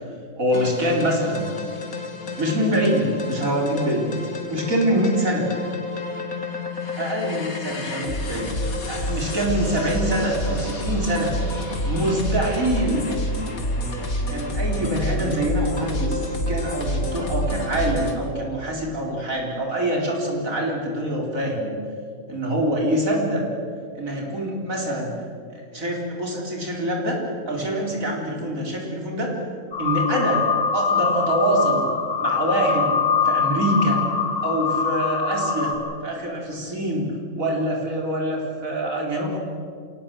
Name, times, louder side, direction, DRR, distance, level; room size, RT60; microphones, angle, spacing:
voice 1, 0.4-1.5 2.4-4.1 4.5-5.5 7.0-8.5 8.9-11.3 11.8-13.1 14.3-21.8 22.3-23.4 23.9-25.1 25.5-29.3 29.8-30.4 30.7-31.9 32.2-33.0 33.2-34.0 34.4-35.7 36.0-39.4, right 1 dB, 65° right, -1 dB, 4.5 m, -25 dB
sound 1, 0.5-18.1, left 1 dB, 80° left, 2.7 m, -28 dB
sound 2, 29.7-35.8, left 5 dB, 45° left, 4.2 m, -23 dB
28.0 x 18.0 x 7.6 m, 2.3 s
omnidirectional pair, 1.5 m